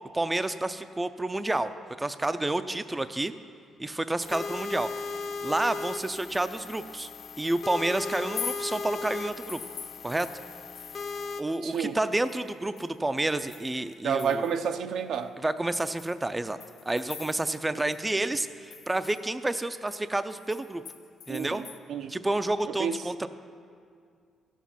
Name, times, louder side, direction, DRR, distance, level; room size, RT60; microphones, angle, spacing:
voice 1, 0.1-1.7 2.0-3.3 3.8-7.1 7.4-9.6 10.0-10.3 11.4-14.5 15.4-16.6 16.9-20.8 21.3-21.6 22.1-23.3, right 2 dB, 15° right, 11 dB, 0.4 m, -29 dB
sound 1, 4.2-11.4, left 4 dB, 50° left, 0.7 m, -37 dB
sound 2, 8.3-11.2 11.5-14.7 15.1-15.2 15.7-17.7 17.9-18.0 18.4-21.8, left 7 dB, 90° left, 0.8 m, -44 dB
voice 2, 11.6-12.0 14.0-15.3 21.3-22.1 22.8-23.0, right 7 dB, 70° right, 8 dB, 0.5 m, -30 dB
13.5 x 7.3 x 5.7 m, 2.2 s
cardioid pair, 90°, 0 cm